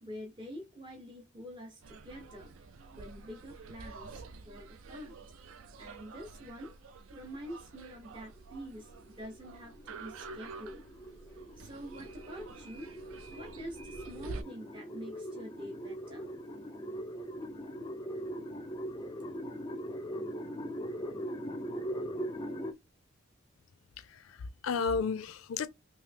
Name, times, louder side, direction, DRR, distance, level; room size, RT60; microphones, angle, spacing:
voice 1, 0.0-2.5 2.9-5.2 5.8-6.7 7.1-8.9 9.2-10.8 11.6-12.9 13.3-16.3, equal, 25° right, 0.6 m, -46 dB
sound 1, 1.8-14.4, right 4 dB, 75° right, 0.4 m, -49 dB
sound 2, 8.4-22.7, equal, 20° left, 0.4 m, -41 dB
voice 2, 24.0-25.7, left 5 dB, 75° left, 0.4 m, -33 dB
3.0 x 2.8 x 3.2 m
head